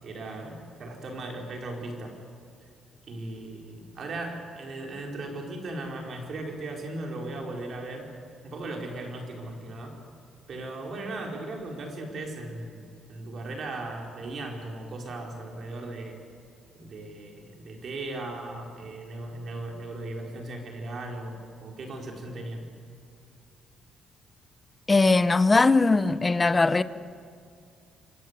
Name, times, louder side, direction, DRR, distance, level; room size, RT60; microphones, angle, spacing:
voice 1, 0.0-2.2 3.1-8.1 8.4-10.0 10.5-16.2 16.7-22.6, right 2 dB, 40° right, 4.4 m, -37 dB
voice 2, 24.9-26.8, left 3 dB, 15° left, 0.7 m, -20 dB
26.5 x 24.5 x 8.2 m
cardioid pair, 180°, 0 cm